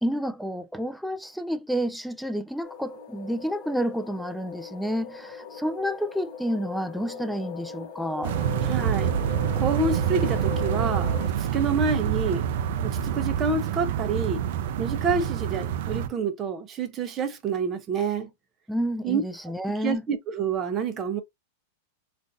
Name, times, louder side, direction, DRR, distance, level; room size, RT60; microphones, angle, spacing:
voice 1, 0.0-8.3 18.7-20.1, equal, ahead, 0.4 m, -30 dB
sound 1, 2.6-11.3, left 5 dB, 35° left, 1.3 m, -39 dB
sound 2, 8.2-16.1, right 9 dB, 60° right, 0.4 m, -27 dB
voice 2, 8.6-9.1 9.6-12.5 12.8-14.4 14.8-18.3 19.0-19.5 19.8-21.2, right 5 dB, 25° right, 0.7 m, -28 dB
3.7 x 2.5 x 2.6 m
supercardioid pair, 150°, 0 cm